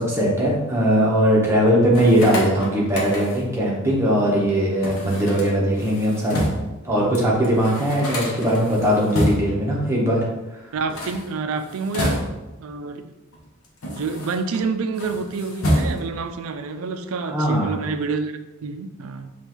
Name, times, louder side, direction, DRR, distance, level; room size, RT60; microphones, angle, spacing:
voice 1, 0.0-6.5 6.8-10.2 17.3-17.7, equal, 10° right, -4 dB, 0.9 m, -20 dB
sound 1, 1.9-3.6 4.8-6.8 7.2-7.3 7.4-9.7 10.8-12.6 13.3-14.6 14.9-16.3, equal, 70° left, 0.8 m, -28 dB
voice 2, 10.7-12.3 12.6-13.1 13.9-18.3 18.6-19.3, right 4 dB, 75° right, 8 dB, 0.4 m, -28 dB
5.3 x 2.4 x 3.0 m, 1.0 s
head